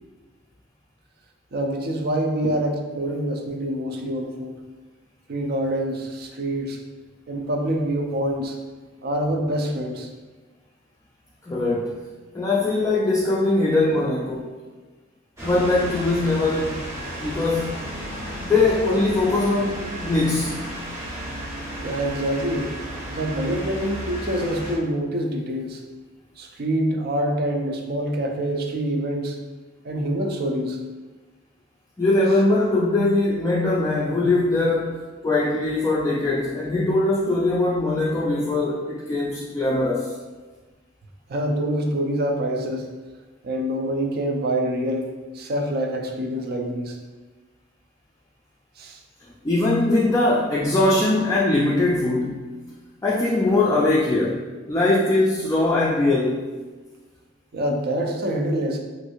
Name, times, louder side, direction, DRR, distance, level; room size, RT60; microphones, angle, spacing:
voice 1, 1.5-4.6 5.3-6.8 7.3-8.6 9.0-10.1 21.8-22.7 23.1-25.8 26.4-29.4 29.8-30.8 41.3-42.9 43.4-47.0 48.8-49.0 57.5-58.8, right 1 dB, 50° right, 3 dB, 0.4 m, -26 dB
voice 2, 11.5-12.0 12.3-14.5 15.4-16.8 17.2-17.7 18.4-20.5 32.0-35.0 35.2-40.1 49.4-52.5 53.0-56.5, left 2 dB, 15° left, -6 dB, 0.3 m, -21 dB
sound 1, 15.4-24.8, equal, 15° right, 0.7 m, -33 dB
3.1 x 2.6 x 2.9 m, 1.3 s
head